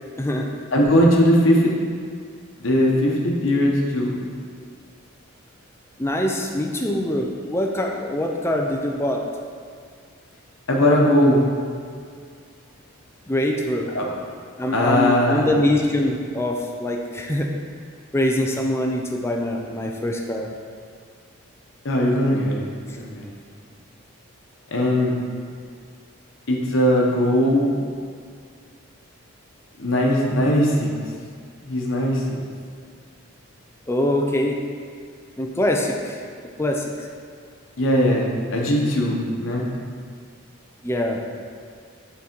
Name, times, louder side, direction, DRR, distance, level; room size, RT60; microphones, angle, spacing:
voice 1, 0.2-0.5 6.0-9.2 13.3-13.9 14.6-17.5 18.1-20.5 22.9-23.0 33.9-34.6 35.4-36.2 36.6-37.1 40.8-41.2, left 1 dB, 10° left, 1 dB, 0.4 m, -23 dB
voice 2, 0.7-1.7 2.6-4.1 10.7-11.4 13.9-14.0 14.7-15.4 21.8-23.3 24.7-25.1 26.5-27.7 29.8-30.9 31.6-32.4 37.8-39.6, equal, 65° left, -2 dB, 0.9 m, -19 dB
6.0 x 4.0 x 4.4 m, 2.1 s
head